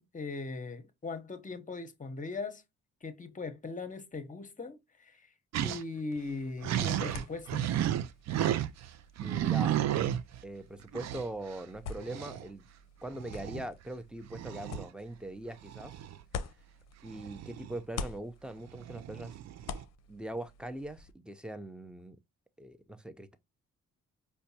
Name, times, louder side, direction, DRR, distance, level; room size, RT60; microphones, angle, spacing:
voice 1, 0.0-2.6 3.0-5.2 5.6-7.6, left 3 dB, 25° left, 0.8 m, -39 dB
sound 1, 5.5-5.8 6.2-6.3 6.6-8.9 9.2-10.4 10.9-11.3 12.0-12.5 13.2-13.7 14.2-14.9 15.6-16.2 17.1-18.0 18.7-19.8, right 11 dB, 60° right, 0.4 m, -33 dB
sound 2, 6.2-17.4 17.7-21.1, left 5 dB, 60° left, 0.5 m, -47 dB
voice 2, 9.2-9.8 10.4-12.6 13.0-15.9 17.0-19.4 20.1-22.2 22.6-23.4, right 1 dB, 5° right, 0.5 m, -41 dB
4.4 x 2.2 x 2.7 m
supercardioid pair, 55°, 31 cm